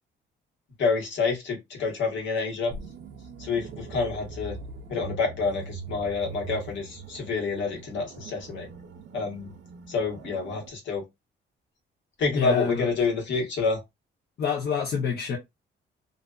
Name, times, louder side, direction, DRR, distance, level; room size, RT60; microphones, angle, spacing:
voice 1, 0.8-2.7 3.4-4.6 4.9-8.7 9.1-9.5 9.9-11.0 12.2-13.8, left 4 dB, 70° left, 1.3 m, -28 dB
sound 1, 2.7-10.7, right 4 dB, 65° right, 0.6 m, -42 dB
voice 2, 12.3-12.9 14.4-15.4, left 7 dB, 55° left, 0.9 m, -27 dB
2.5 x 2.4 x 2.3 m
cardioid pair, 90°, 20 cm